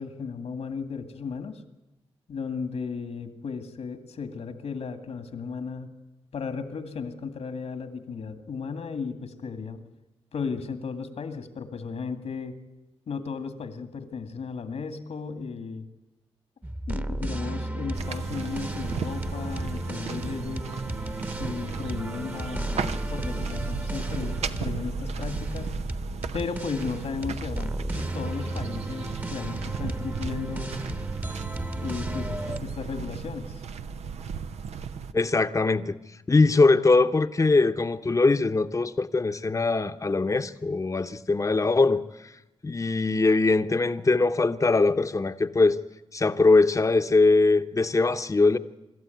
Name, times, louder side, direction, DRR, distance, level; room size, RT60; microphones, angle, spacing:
voice 1, 0.0-1.6 2.3-5.9 6.3-9.8 10.3-12.5 13.1-15.9 16.9-20.7 21.4-25.7 26.3-30.7 31.8-33.6, left 5 dB, 80° left, 2.1 m, -35 dB
sound 1, 16.6-32.6, right 1 dB, 15° right, 1.1 m, -34 dB
sound 2, 17.9-35.1, right 6 dB, 90° right, 0.8 m, -36 dB
voice 2, 35.1-35.9 36.3-42.0 42.6-45.8 46.1-48.6, left 3 dB, 30° left, 0.9 m, -21 dB
25.0 x 13.0 x 9.3 m
cardioid pair, 65°, 11 cm